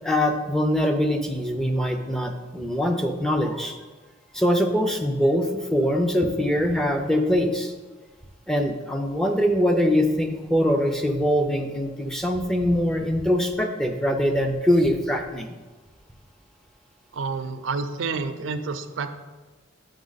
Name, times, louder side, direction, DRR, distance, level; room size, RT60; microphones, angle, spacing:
voice 1, 0.0-3.8 4.3-7.7 8.5-15.5, equal, 5° left, 3 dB, 0.5 m, -23 dB
voice 2, 17.1-19.2, right 4 dB, 85° right, 10 dB, 0.5 m, -29 dB
6.2 x 5.4 x 4.0 m, 1.2 s
head